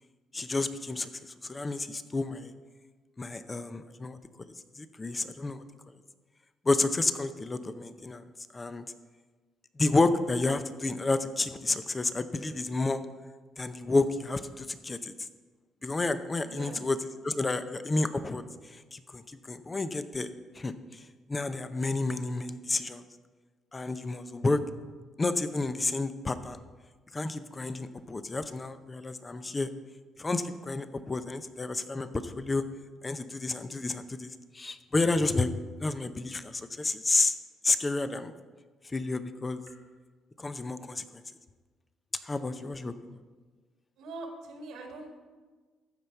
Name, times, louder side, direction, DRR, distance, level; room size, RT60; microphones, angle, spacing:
voice 1, 0.3-1.1 1.4-2.5 3.2-4.2 4.8-5.6 6.7-8.2 8.5-8.8 9.8-13.0 13.6-15.1 15.8-17.0 17.2-18.4 18.9-20.3 20.6-20.7 21.3-23.0 23.7-24.6 25.2-26.6 27.1-29.7 30.2-32.6 33.0-35.5 35.8-37.4 37.6-38.3 38.9-39.6 40.4-41.0 42.3-42.9, left 3 dB, 25° left, 11 dB, 0.6 m, -30 dB
voice 2, 16.4-16.8 44.0-45.2, right 3 dB, 85° right, 2 dB, 1.7 m, -42 dB
14.0 x 5.6 x 4.5 m, 1.4 s
cardioid pair, 90°, 0 cm